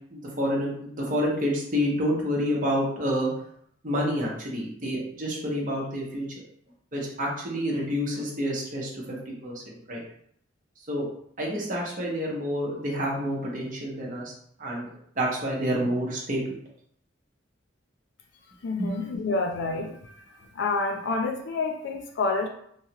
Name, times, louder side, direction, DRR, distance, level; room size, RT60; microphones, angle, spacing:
voice 1, 0.1-3.3 3.8-6.3 6.9-10.0 10.9-11.1 11.4-14.3 14.6-14.9 15.2-16.4 18.8-18.9, equal, 45° right, -3 dB, 0.9 m, -28 dB
voice 2, 18.6-20.1 20.6-22.5, left 3 dB, 65° left, 3 dB, 0.4 m, -28 dB
3.0 x 2.4 x 2.9 m, 0.66 s
head